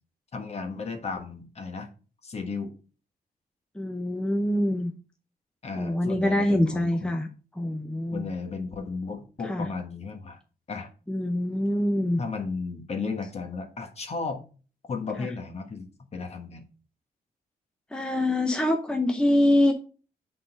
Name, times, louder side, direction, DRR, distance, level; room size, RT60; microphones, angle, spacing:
voice 1, 0.3-1.9 2.2-2.7 5.6-7.1 8.1-10.4 10.7-10.9 12.2-14.4 14.9-16.7, left 4 dB, 40° left, 5 dB, 1.4 m, -34 dB
voice 2, 3.7-4.9 5.8-7.3 7.6-8.3 9.4-9.7 11.1-12.2 17.9-19.7, left 1 dB, 5° left, 4 dB, 0.7 m, -24 dB
8.4 x 4.0 x 5.1 m, 0.37 s
wide cardioid pair, 140°, 16 cm